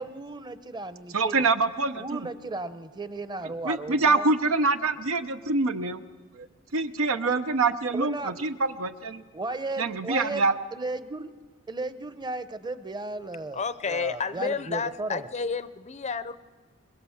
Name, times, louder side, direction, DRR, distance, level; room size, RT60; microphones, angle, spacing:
voice 1, 0.0-1.4 2.0-4.3 7.9-8.4 9.3-11.3 11.7-15.2, right 2 dB, 20° right, 12 dB, 0.8 m, -35 dB
voice 2, 1.1-2.2 3.6-6.0 6.3-6.5 6.7-9.2 9.8-10.6, right 3 dB, 80° right, 9 dB, 0.9 m, -25 dB
voice 3, 13.5-16.4, left 5 dB, 35° left, 14 dB, 0.6 m, -30 dB
22.0 x 21.5 x 7.2 m, 1.4 s
head